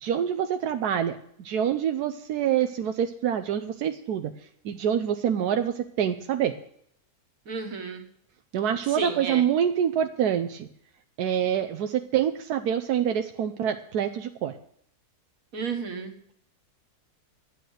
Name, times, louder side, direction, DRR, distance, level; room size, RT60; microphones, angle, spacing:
voice 1, 0.0-4.3 4.6-6.6 8.5-10.7 11.2-14.6, right 9 dB, 90° right, 7 dB, 1.3 m, -26 dB
voice 2, 7.5-8.0 9.0-9.4 15.5-16.1, right 4 dB, 60° right, 3 dB, 1.9 m, -32 dB
11.5 x 9.4 x 6.4 m, 0.66 s
omnidirectional pair, 1.6 m